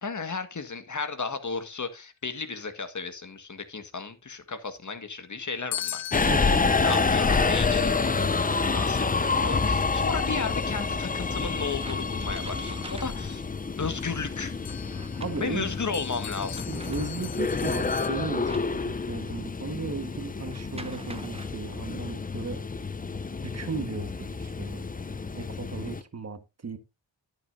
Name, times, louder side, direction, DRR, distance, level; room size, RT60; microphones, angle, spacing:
voice 1, 0.0-6.0 6.7-13.5 13.8-14.5 15.4-16.7, left 4 dB, 40° left, 1.8 m, -34 dB
sound 1, 3.1-3.2 4.7-4.8 5.4-8.7 10.6-13.5 14.5-15.7 16.2-19.4 20.4-21.5, right 2 dB, 15° right, 1.0 m, -47 dB
sound 2, 5.7-9.5 13.5-13.6 14.0-18.1, left 12 dB, 75° left, 0.9 m, -41 dB
Subway metro underground, 6.1-26.0, left 4 dB, 20° left, 0.7 m, -28 dB
voice 2, 6.3-7.0 15.2-15.7 16.7-22.6 23.4-24.9 25.3-26.8, right 4 dB, 35° right, 1.6 m, -36 dB
10.5 x 9.3 x 2.7 m
cardioid pair, 50°, 44 cm